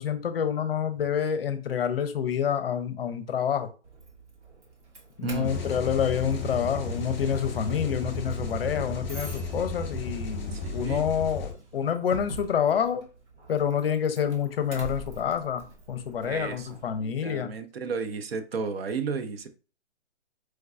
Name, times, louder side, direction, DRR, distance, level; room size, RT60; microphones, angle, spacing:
voice 1, 0.0-3.7 5.2-13.0 13.5-17.5, left 8 dB, 55° left, 0.6 m, -28 dB
Doorbell, 3.8-17.0, right 3 dB, 75° right, 1.3 m, -46 dB
voice 2, 5.2-5.5 10.5-11.1 16.2-19.5, right 5 dB, 60° right, 0.6 m, -33 dB
sound 1, 5.4-11.5, left 2 dB, 15° left, 0.8 m, -34 dB
4.5 x 2.3 x 2.3 m
hypercardioid pair, 150°, 35 cm